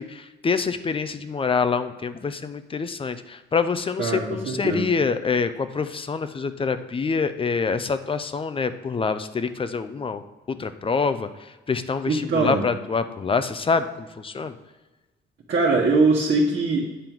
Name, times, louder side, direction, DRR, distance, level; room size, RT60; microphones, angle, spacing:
voice 1, 0.0-14.5, left 5 dB, 25° left, 11 dB, 0.5 m, -26 dB
voice 2, 4.0-4.9 12.1-12.6 15.5-16.9, right 3 dB, 55° right, -4 dB, 1.3 m, -22 dB
8.9 x 3.7 x 4.5 m, 1.2 s
cardioid pair, 90°, 20 cm